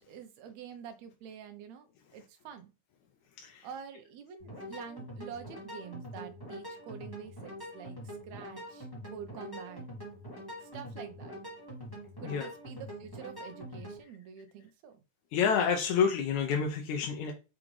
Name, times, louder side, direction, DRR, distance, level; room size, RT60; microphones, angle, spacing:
voice 1, 0.1-2.7 3.6-9.8 10.6-11.4 12.2-15.0, right 8 dB, 70° right, 8 dB, 1.9 m, -47 dB
sound 1, 4.4-14.0, equal, 10° left, 2.1 m, -44 dB
voice 2, 15.3-17.3, left 6 dB, 75° left, 2 dB, 2.0 m, -28 dB
6.1 x 4.9 x 3.2 m, 0.30 s
omnidirectional pair, 3.6 m